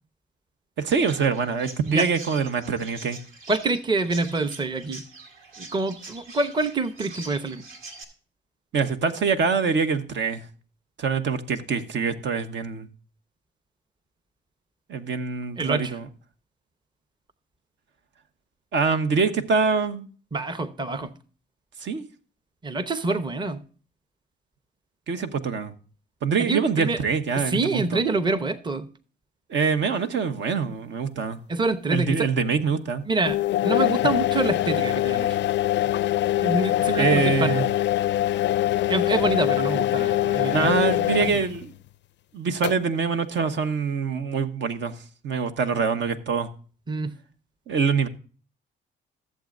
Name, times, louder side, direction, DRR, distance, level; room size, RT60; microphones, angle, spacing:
voice 1, 0.8-3.2 8.7-10.5 11.0-12.9 14.9-16.1 18.7-20.1 21.8-22.1 25.1-25.7 26.2-28.0 29.5-31.4 31.9-33.0 37.0-37.6 40.5-41.7 42.3-44.9 45.2-46.5 47.7-48.1, right 5 dB, 65° right, 1.1 m, -24 dB
Chirp tweet, 0.9-8.0, right 3 dB, 85° right, 2.0 m, -43 dB
voice 2, 3.5-5.0 5.6-7.6 15.6-16.0 20.3-21.1 22.6-23.6 26.4-27.0 27.3-28.9 31.5-32.3 33.1-35.4 36.4-37.6 38.9-40.7 41.3-41.4 46.9-47.1, right 3 dB, 25° right, 0.8 m, -26 dB
sound 1, 33.3-41.6 42.6-42.7, left 14 dB, 65° left, 0.4 m, -23 dB
15.0 x 7.5 x 2.5 m
cardioid pair, 90°, 20 cm